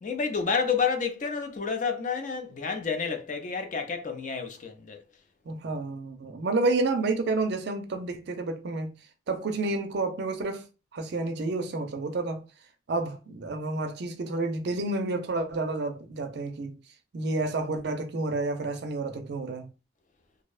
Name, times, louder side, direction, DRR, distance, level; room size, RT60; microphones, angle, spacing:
voice 1, 0.0-5.0, left 5 dB, 40° left, 0.4 m, -29 dB
voice 2, 5.5-9.0 9.3-10.6 10.9-12.5 12.9-16.8 17.1-19.7, right 2 dB, 55° right, 0.4 m, -30 dB
2.6 x 2.1 x 2.3 m
head